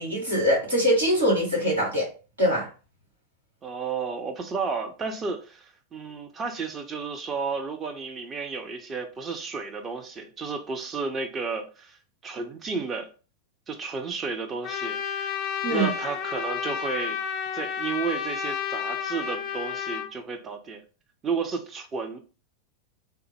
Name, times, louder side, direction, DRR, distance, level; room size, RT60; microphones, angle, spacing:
voice 1, 0.0-2.1 2.4-2.7 15.6-15.9, equal, 75° right, 1.5 m, -23 dB
voice 2, 3.6-12.0 12.2-13.1 13.7-15.4 15.7-17.2 17.5-20.8 21.2-22.2, right 5 dB, 25° right, 0.6 m, -32 dB
Trumpet, 14.6-20.1, left 8 dB, 35° left, 0.4 m, -31 dB
3.4 x 2.0 x 3.3 m
figure-of-eight pair, 90°, 0 cm